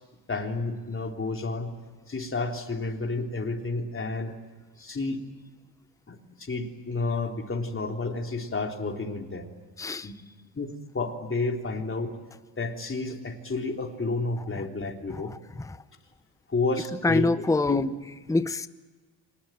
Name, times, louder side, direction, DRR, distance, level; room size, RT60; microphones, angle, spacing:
voice 1, 0.3-1.7 2.1-4.3 4.8-5.3 6.1-9.5 10.0-10.1 10.6-12.1 12.6-15.3 16.5-17.9, left 3 dB, 25° left, 3 dB, 3.6 m, -31 dB
voice 2, 9.8-10.1 15.1-15.8 17.0-17.9 18.3-18.7, left 2 dB, 5° left, 14 dB, 0.8 m, -26 dB
25.5 x 19.5 x 9.1 m, 1.4 s
cardioid pair, 85°, 45 cm